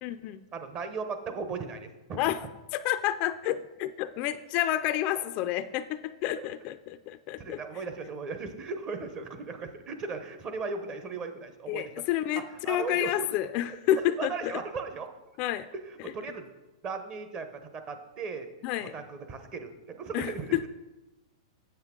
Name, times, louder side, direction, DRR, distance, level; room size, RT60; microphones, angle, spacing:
voice 1, 0.0-0.4 2.2-2.4 2.7-7.8 11.7-14.6 15.4-15.7 16.0-16.1 18.6-18.9 20.1-20.7, left 13 dB, 40° left, 12 dB, 0.3 m, -30 dB
voice 2, 0.5-2.2 5.2-5.3 6.4-6.5 7.4-11.9 12.6-13.3 14.2-15.1 15.9-16.5 16.8-18.5 18.9-20.7, right 4 dB, 30° right, 7 dB, 0.8 m, -37 dB
8.0 x 7.6 x 3.7 m, 1.1 s
hypercardioid pair, 135°, 3 cm